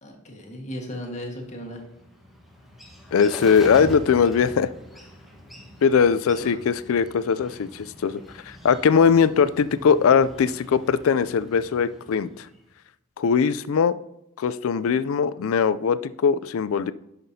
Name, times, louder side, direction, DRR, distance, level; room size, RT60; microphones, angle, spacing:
voice 1, 0.0-1.8 6.4-6.6, equal, 35° left, 0 dB, 1.6 m, -36 dB
Bird, 1.2-12.7, equal, ahead, 1.2 m, -42 dB
voice 2, 3.1-4.7 5.8-8.2 8.5-12.4 13.2-13.9 14.4-16.9, left 6 dB, 70° left, 15 dB, 0.4 m, -20 dB
10.5 x 5.9 x 2.7 m, 0.80 s
head